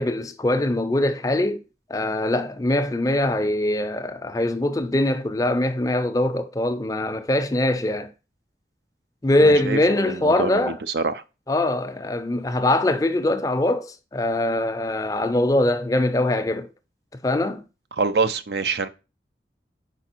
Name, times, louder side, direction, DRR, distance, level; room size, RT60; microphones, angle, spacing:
voice 1, 0.0-1.6 1.9-8.1 9.2-10.8 11.5-16.7 17.2-17.6, left 1 dB, 20° left, 0.4 m, -22 dB
voice 2, 9.4-11.2 18.0-18.9, right 4 dB, 70° right, 0.5 m, -25 dB
5.0 x 4.9 x 4.4 m
head